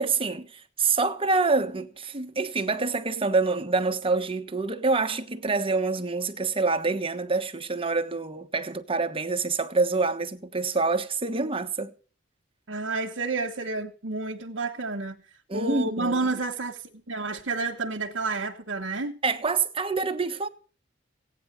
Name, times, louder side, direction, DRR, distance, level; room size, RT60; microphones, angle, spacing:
voice 1, 0.0-11.9 15.5-16.2 19.2-20.5, right 3 dB, 30° right, 1.2 m, -26 dB
voice 2, 12.7-15.2 15.5-19.1, right 3 dB, 80° right, 1.2 m, -30 dB
16.5 x 9.6 x 6.6 m
head